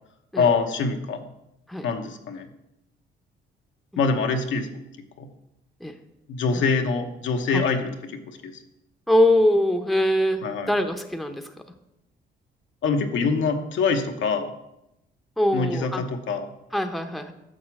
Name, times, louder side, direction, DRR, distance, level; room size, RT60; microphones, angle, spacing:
voice 1, 0.4-1.2 1.8-2.5 4.0-4.7 5.2-5.3 6.3-7.9 8.3-8.5 10.4-10.7 12.8-14.5 15.5-16.5, left 4 dB, 70° left, 4 dB, 1.1 m, -24 dB
voice 2, 9.1-11.5 15.4-16.1 16.7-17.3, left 1 dB, ahead, 5 dB, 0.8 m, -23 dB
7.2 x 6.5 x 6.0 m, 0.86 s
cardioid pair, 90°, 20 cm